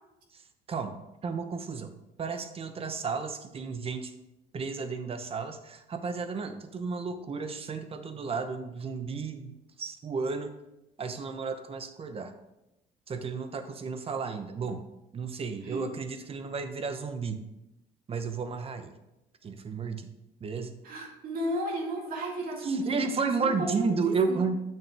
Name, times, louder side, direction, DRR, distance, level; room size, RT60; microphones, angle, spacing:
voice 1, 1.2-1.9 2.2-4.1 4.5-9.5 9.8-10.5 11.0-12.3 13.1-14.8 15.1-17.4 18.1-18.9 19.4-20.1 20.4-20.8 22.6-24.6, right 4 dB, 35° right, 8 dB, 0.9 m, -32 dB
voice 2, 20.8-23.0 23.4-24.0 24.3-24.4, right 1 dB, 60° right, -1 dB, 2.0 m, -33 dB
8.8 x 6.2 x 3.5 m, 0.93 s
cardioid pair, 110°, 17 cm